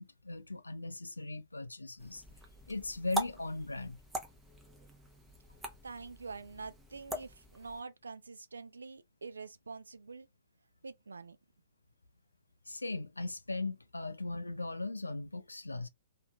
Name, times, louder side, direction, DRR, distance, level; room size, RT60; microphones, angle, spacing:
voice 1, 0.0-2.2 2.7-4.0 12.7-15.9, left 2 dB, 85° left, 0.4 m, -38 dB
sound 1, 2.0-7.8, right 1 dB, 5° right, 0.6 m, -43 dB
voice 2, 5.8-10.3 10.8-11.4, right 4 dB, 75° right, 0.4 m, -46 dB
2.8 x 2.5 x 2.2 m
figure-of-eight pair, 120°, 0 cm